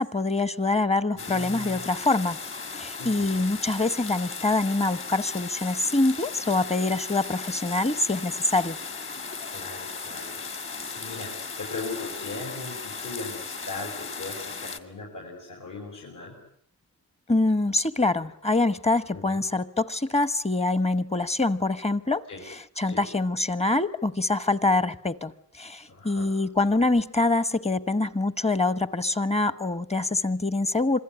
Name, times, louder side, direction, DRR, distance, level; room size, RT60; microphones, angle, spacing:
voice 1, 0.0-2.4 2.7-8.8 17.3-31.0, left 2 dB, 20° left, 15 dB, 1.2 m, -25 dB
voice 2, 1.2-1.8 3.0-3.4 9.5-10.4 10.9-16.3 19.1-19.4 22.3-22.4 22.9-23.0 25.9-26.3, left 3 dB, 65° left, -2 dB, 7.4 m, -38 dB
sound 1, 1.2-14.8, left 4 dB, 40° left, 2.3 m, -37 dB
27.0 x 21.5 x 9.8 m, 0.67 s
cardioid pair, 115°, 33 cm